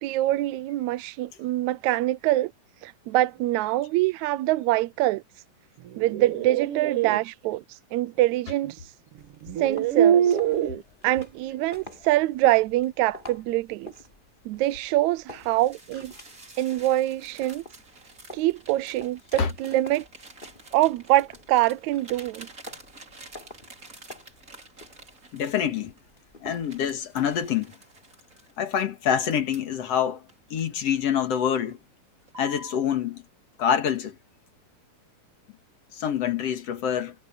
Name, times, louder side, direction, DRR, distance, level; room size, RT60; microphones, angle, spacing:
voice 1, 0.0-2.5 2.8-5.2 6.0-8.9 9.6-10.4 11.0-13.9 14.5-16.1 16.6-17.6 18.3-20.1 20.7-22.5, right 16 dB, 80° right, 1.8 m, -24 dB
sound 1, 5.9-7.2 8.7-8.8 9.4-10.8, right 9 dB, 60° right, 1.8 m, -24 dB
sound 2, 9.2-27.7, left 2 dB, 15° left, 3.9 m, -49 dB
sound 3, 15.3-26.0 26.5-29.8 30.3-31.2 31.5-31.8 32.3-32.8, right 2 dB, 25° right, 4.0 m, -49 dB
voice 2, 25.3-25.9 26.4-27.7 28.6-30.2 30.5-31.8 32.4-33.2 33.6-34.2 35.9-37.1, left 8 dB, 60° left, 2.5 m, -26 dB
omnidirectional pair, 3.5 m